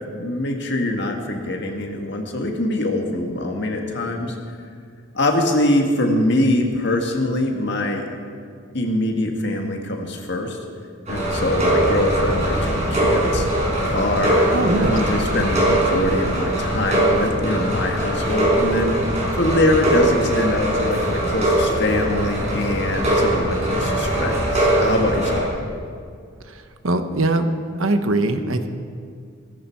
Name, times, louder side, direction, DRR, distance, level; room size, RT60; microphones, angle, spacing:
voice 1, 0.1-4.4 5.1-8.1 8.7-10.6 11.1-13.5 13.9-25.4, left 1 dB, 55° left, 2 dB, 1.9 m, -23 dB
sound 1, 11.1-25.4, right 1 dB, 35° right, 5.5 m, -21 dB
voice 2, 14.5-15.0 26.8-27.5 27.8-28.7, right 2 dB, 75° right, 8 dB, 1.2 m, -21 dB
17.5 x 16.0 x 4.6 m, 2.2 s
head